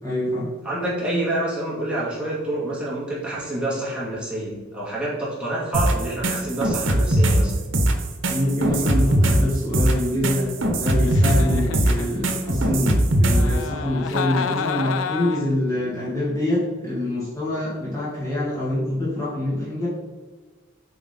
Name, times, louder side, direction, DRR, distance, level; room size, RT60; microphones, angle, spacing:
voice 1, 0.0-0.5 8.3-19.9, left 1 dB, 15° left, -9 dB, 1.9 m, -25 dB
voice 2, 0.6-7.5, right 1 dB, 5° right, -8 dB, 2.3 m, -27 dB
sound 1, 5.7-13.6, right 1 dB, 75° right, 1.0 m, -20 dB
Giggle, 11.0-12.5 13.3-15.6, left 6 dB, 80° left, 0.4 m, -30 dB
8.0 x 4.8 x 3.9 m, 1.4 s
head